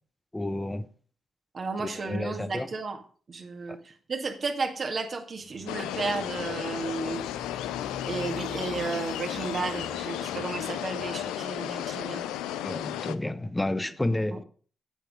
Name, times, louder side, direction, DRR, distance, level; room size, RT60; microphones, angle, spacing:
voice 1, 0.3-0.9 1.8-2.7 3.7-3.8 12.6-14.4, left 1 dB, 15° left, 1.0 m, -30 dB
voice 2, 1.5-3.0 3.3-7.3 8.1-12.3, right 4 dB, 50° right, 2.1 m, -33 dB
Motorcycle, 5.4-11.4, left 5 dB, 55° left, 1.0 m, -45 dB
sound 1, 5.7-13.1, left 12 dB, 85° left, 0.5 m, -34 dB
9.3 x 8.1 x 5.2 m
hypercardioid pair, 45°, 0 cm